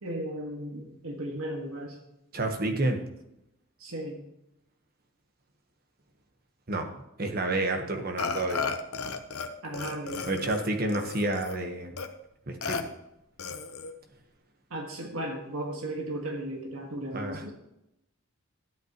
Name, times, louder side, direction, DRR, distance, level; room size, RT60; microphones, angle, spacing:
voice 1, 0.0-2.0 3.8-4.2 9.6-10.3 14.7-17.5, right 1 dB, 75° right, 1 dB, 1.7 m, -36 dB
voice 2, 2.3-3.0 6.7-6.9 7.2-8.6 10.3-12.0 12.5-12.9 17.1-17.4, right 2 dB, 40° right, 4 dB, 1.2 m, -29 dB
Burping eructation, 8.2-9.5 9.7-11.6 12.0-12.1 12.6-12.8 13.4-13.9, left 5 dB, 80° left, 0.9 m, -34 dB
12.5 x 8.3 x 3.0 m, 0.85 s
head